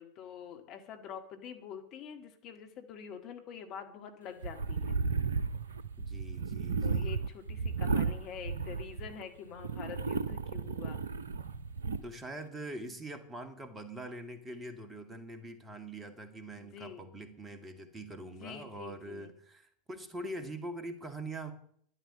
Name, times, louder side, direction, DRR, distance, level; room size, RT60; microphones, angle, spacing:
voice 1, 0.0-5.0 6.8-11.0 16.6-17.1 18.2-19.3, left 8 dB, 40° left, 5 dB, 1.8 m, -46 dB
sound 1, 4.4-9.2 9.6-12.0, right 4 dB, 70° right, 0.7 m, -34 dB
voice 2, 6.0-7.1 12.0-21.5, right 1 dB, 15° right, 8 dB, 2.0 m, -43 dB
12.5 x 11.5 x 6.8 m, 0.62 s
figure-of-eight pair, 85°, 0 cm